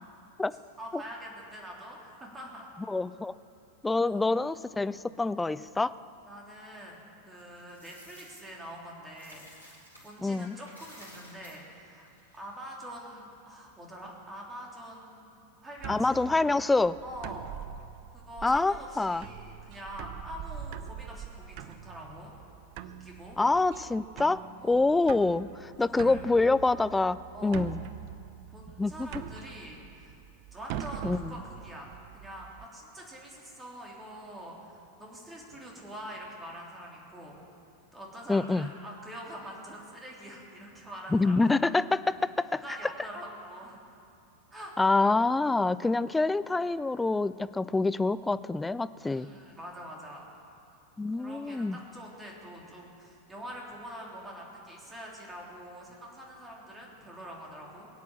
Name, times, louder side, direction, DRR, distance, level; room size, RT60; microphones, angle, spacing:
voice 1, 0.8-2.7 6.3-12.1 12.3-16.2 17.0-17.6 18.1-22.3 22.8-23.4 24.6-24.9 25.9-26.3 27.3-27.7 28.5-30.2 30.5-37.4 37.9-41.6 42.6-43.8 44.5-44.7 49.0-50.3 51.1-57.9, equal, 15° right, -2 dB, 3.5 m, -45 dB
voice 2, 2.9-3.3 3.8-5.9 10.2-10.6 15.9-17.0 18.4-19.3 23.4-27.8 28.8-29.1 31.0-31.3 38.3-38.7 41.1-42.8 44.8-49.3 51.0-51.8, left 3 dB, 10° left, 15 dB, 0.4 m, -26 dB
Coin (dropping), 7.4-10.2 10.5-12.8, equal, 85° left, 3.9 m, -54 dB
sound 1, 15.8-32.7, right 9 dB, 45° right, 0.6 m, -43 dB
22.0 x 8.4 x 7.5 m, 2.5 s
figure-of-eight pair, 90°, 0 cm